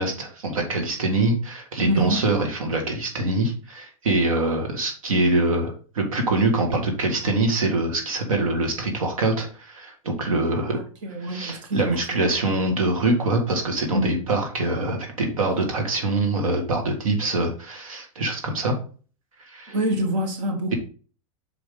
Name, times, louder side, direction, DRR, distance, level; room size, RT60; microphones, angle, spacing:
voice 1, 0.0-10.8 11.2-18.7 19.5-19.8, right 2 dB, 90° right, 1.9 m, -24 dB
voice 2, 1.8-2.2 10.7-12.0 12.5-12.6 13.9-14.2 17.2-17.3 19.7-20.8, right 1 dB, 65° right, 1.7 m, -26 dB
6.1 x 4.8 x 3.8 m
hypercardioid pair, 115°, 17 cm